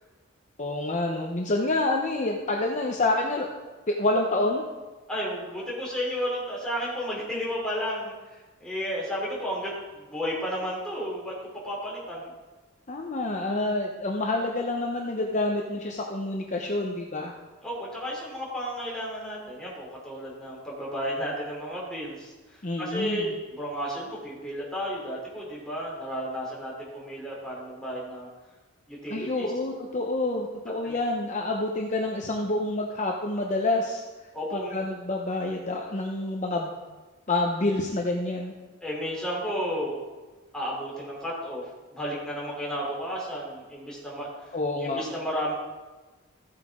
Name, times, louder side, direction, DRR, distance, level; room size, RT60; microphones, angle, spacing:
voice 1, 0.6-3.5 3.9-4.6 12.9-17.3 22.6-23.3 29.1-34.0 34.5-36.8 37.3-38.5 44.5-45.0, left 2 dB, 35° left, 0 dB, 0.8 m, -28 dB
voice 2, 5.1-11.3 11.6-12.3 17.6-28.3 28.9-29.5 30.8-31.0 34.3-34.8 38.8-40.0 40.5-41.6 41.9-44.5 44.8-45.5, equal, 5° left, -6 dB, 3.2 m, -33 dB
14.5 x 8.9 x 3.7 m, 1.2 s
head